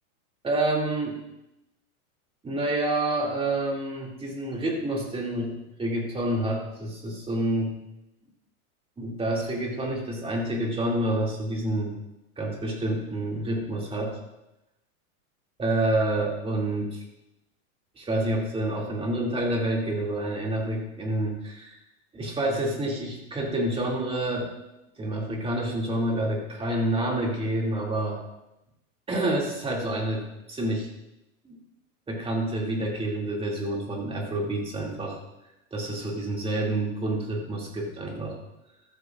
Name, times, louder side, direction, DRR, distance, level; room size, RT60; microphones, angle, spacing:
voice 1, 0.4-1.2 2.4-7.7 9.0-12.0 12.4-14.2 15.6-17.0 18.0-21.8 22.1-24.5 25.0-28.2 29.1-30.9 31.4-31.6 32.1-35.2 35.7-38.4, right 1 dB, 15° right, -2 dB, 2.4 m, -28 dB
14.0 x 13.5 x 2.5 m, 0.91 s
supercardioid pair, 145°, 44 cm